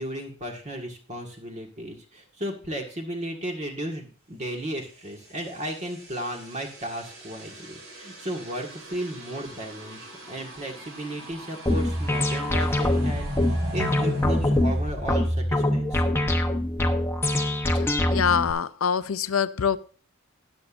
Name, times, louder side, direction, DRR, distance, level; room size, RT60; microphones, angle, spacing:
voice 1, 0.0-13.3 13.7-16.2, right 1 dB, 35° right, 1 dB, 1.8 m, -34 dB
sound 1, 5.0-15.7, equal, 60° right, 3.6 m, -38 dB
sound 2, 11.7-18.5, left 1 dB, 10° left, 0.9 m, -24 dB
voice 2, 18.1-19.8, left 7 dB, 75° left, 14 dB, 0.6 m, -24 dB
13.0 x 10.0 x 2.6 m, 0.39 s
head